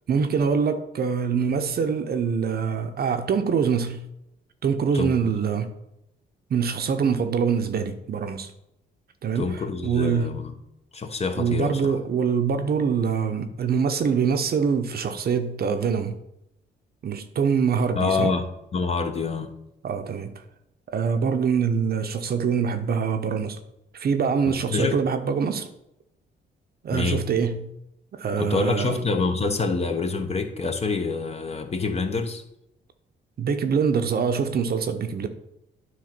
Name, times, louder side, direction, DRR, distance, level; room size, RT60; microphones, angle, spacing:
voice 1, 0.1-4.1 4.6-5.8 6.5-8.5 9.2-10.4 11.3-16.1 17.0-18.3 19.8-20.3 20.9-23.6 23.9-25.7 26.8-27.8 28.1-29.0 33.4-35.3, right 6 dB, 50° right, 0.8 m, -24 dB
voice 2, 9.3-10.6 10.9-12.0 17.9-18.5 18.7-19.5 24.5-25.0 26.9-27.3 28.4-32.4, left 4 dB, 30° left, 1.0 m, -26 dB
9.4 x 3.2 x 5.9 m
cardioid pair, 90°, 20 cm